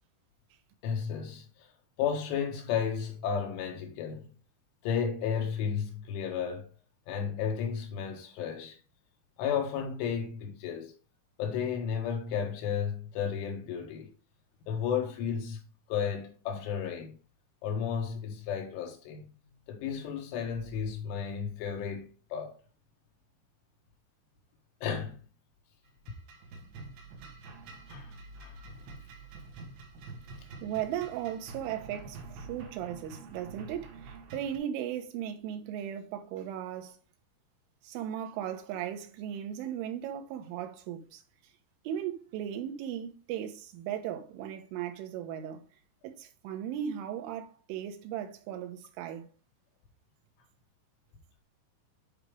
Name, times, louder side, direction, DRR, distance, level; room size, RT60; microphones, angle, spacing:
voice 1, 0.8-1.7 2.0-4.3 4.8-6.7 7.1-8.8 9.4-10.9 11.4-14.1 14.7-15.6 15.9-17.2 17.6-19.3 19.7-22.6 24.8-25.2 27.9-28.1 28.4-28.6, left 7 dB, 80° left, 4.1 m, -33 dB
sound 1, 25.9-34.6, right 4 dB, 70° right, 3.5 m, -47 dB
voice 2, 30.6-37.0 37.8-41.2 41.9-45.6 46.0-49.3, right 10 dB, 85° right, 3.6 m, -37 dB
9.9 x 5.1 x 3.4 m
omnidirectional pair, 5.5 m